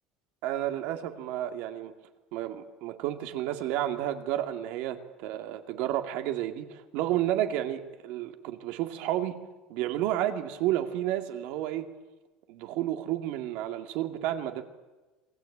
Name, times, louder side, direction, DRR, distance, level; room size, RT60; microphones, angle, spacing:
voice 1, 0.4-1.9 2.3-9.3 9.7-11.9 12.5-14.6, right 12 dB, 65° right, 7 dB, 2.4 m, -31 dB
27.0 x 20.0 x 8.7 m, 1.2 s
cardioid pair, 155°, 2 cm